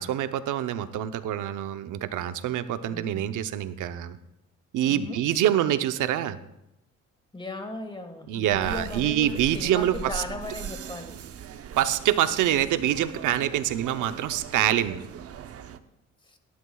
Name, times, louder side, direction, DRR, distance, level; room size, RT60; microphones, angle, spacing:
voice 1, 0.0-4.2 4.7-6.4 8.3-10.2 11.8-15.0, right 11 dB, 85° right, 11 dB, 0.8 m, -25 dB
voice 2, 2.9-3.2 4.8-5.2 7.3-11.2 16.3-16.4, left 2 dB, 15° left, 7 dB, 1.6 m, -37 dB
sound 1, 8.5-15.8, right 8 dB, 50° right, 0.7 m, -40 dB
18.0 x 11.5 x 2.3 m, 0.85 s
cardioid pair, 90°, 30 cm